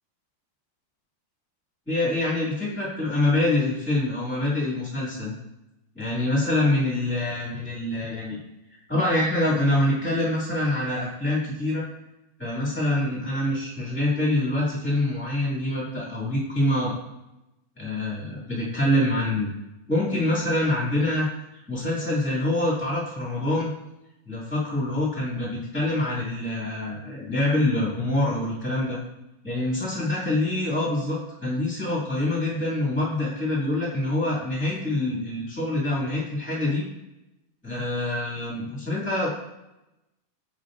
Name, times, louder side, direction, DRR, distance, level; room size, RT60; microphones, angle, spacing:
voice 1, 1.8-5.3 5.9-8.4 8.9-11.8 12.4-17.0 17.8-19.5 19.9-21.3 21.7-23.7 24.2-29.0 29.4-36.8 37.6-39.3, left 1 dB, 10° left, -9 dB, 0.5 m, -25 dB
8.7 x 5.3 x 2.6 m, 0.93 s
omnidirectional pair, 4.6 m